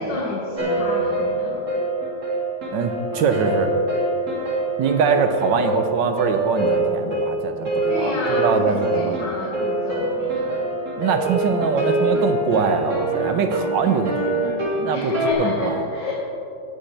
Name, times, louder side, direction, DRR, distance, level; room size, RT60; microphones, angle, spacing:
voice 1, 0.0-1.7 7.9-10.7 14.8-16.1, left 1 dB, 70° left, -6 dB, 2.4 m, -30 dB
sound 1, 0.6-15.3, right 1 dB, 40° right, 2.0 m, -25 dB
voice 2, 2.7-3.7 4.8-9.2 11.0-15.1 15.4-15.8, right 5 dB, 75° right, 7 dB, 1.4 m, -22 dB
16.0 x 8.6 x 3.3 m, 2.7 s
omnidirectional pair, 2.0 m